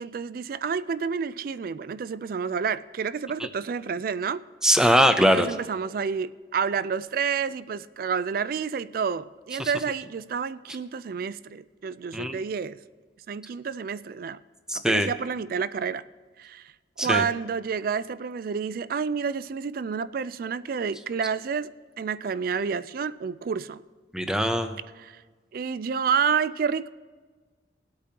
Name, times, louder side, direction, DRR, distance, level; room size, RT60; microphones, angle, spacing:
voice 1, 0.0-4.4 5.2-12.8 13.3-14.4 14.7-16.0 16.4-16.7 17.0-21.7 22.0-23.8 25.0-25.2 25.5-26.9, right 6 dB, 50° right, 16 dB, 0.3 m, -29 dB
voice 2, 4.6-5.5 9.6-9.7 12.1-12.4 14.7-15.1 17.0-17.2 24.1-24.8, equal, 5° right, 7 dB, 0.6 m, -21 dB
19.5 x 8.5 x 2.9 m, 1.4 s
head